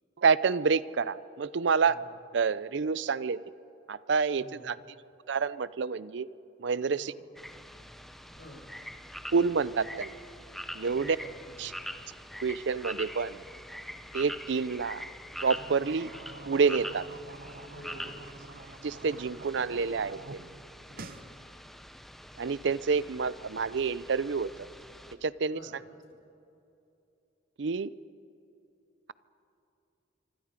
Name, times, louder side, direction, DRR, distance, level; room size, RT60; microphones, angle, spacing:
voice 1, 0.2-2.0 2.3-3.4 3.9-4.8 5.3-6.3 6.6-7.1 9.3-10.1 10.7-11.2 11.6-11.7 12.4-13.4 14.1-15.0 15.4-16.1 16.5-17.1 18.8-20.5 22.4-24.5 25.2-25.6 27.6-27.9, right 5 dB, 65° right, 18 dB, 0.5 m, -28 dB
sound 1, 7.4-25.2, equal, ahead, 0.9 m, -44 dB
voice 2, 8.4-8.7 10.9-11.8 17.7-18.1 20.9-21.3 25.5-25.8, equal, 60° left, -1 dB, 6.9 m, -50 dB
sound 2, 15.3-20.4 20.7-21.2, right 3 dB, 50° right, 1.0 m, -47 dB
25.5 x 25.0 x 5.1 m, 2.8 s
head